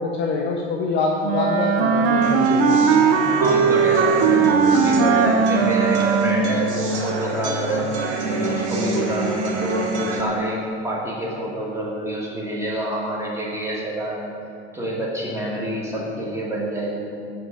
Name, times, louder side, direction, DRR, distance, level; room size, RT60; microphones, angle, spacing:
voice 1, 0.0-2.8, left 3 dB, 30° left, 0 dB, 0.5 m, -25 dB
Wind instrument woodwind instrument, 1.2-6.7, right 6 dB, 50° right, 0.6 m, -18 dB
sound 1, 2.2-10.2, right 2 dB, 65° right, 1.0 m, -26 dB
voice 2, 3.4-7.9 8.3-14.3 14.7-17.1, right 1 dB, 5° right, -5 dB, 1.6 m, -27 dB
6.6 x 5.0 x 4.9 m, 2.5 s
figure-of-eight pair, 75°, 36 cm